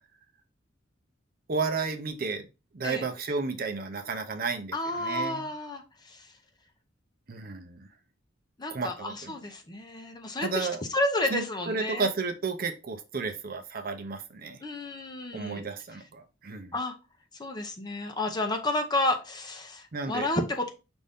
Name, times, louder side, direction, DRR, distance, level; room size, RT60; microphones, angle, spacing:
voice 1, 1.5-2.5 2.7-5.4 7.3-7.9 8.7-9.3 10.4-10.8 11.3-14.6 15.3-16.7 19.9-20.3, right 4 dB, 50° right, 0.6 m, -32 dB
voice 2, 4.7-6.3 8.6-10.7 10.9-12.1 14.6-15.7 16.7-16.9 17.4-20.7, left 1 dB, 20° left, 0.7 m, -31 dB
5.3 x 2.6 x 3.5 m
head